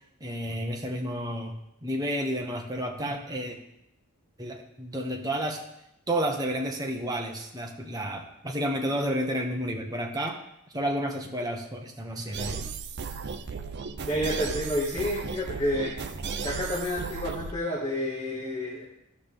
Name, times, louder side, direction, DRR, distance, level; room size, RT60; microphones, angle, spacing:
voice 1, 0.2-1.6 1.8-3.6 4.4-5.6 6.1-10.4 10.7-12.6, equal, 15° right, 1 dB, 1.0 m, -31 dB
sound 1, 12.3-17.5, right 5 dB, 50° right, 0.5 m, -35 dB
voice 2, 14.1-15.9 16.4-18.8, left 1 dB, 20° left, -7 dB, 1.8 m, -29 dB
13.0 x 5.9 x 3.5 m, 0.80 s
head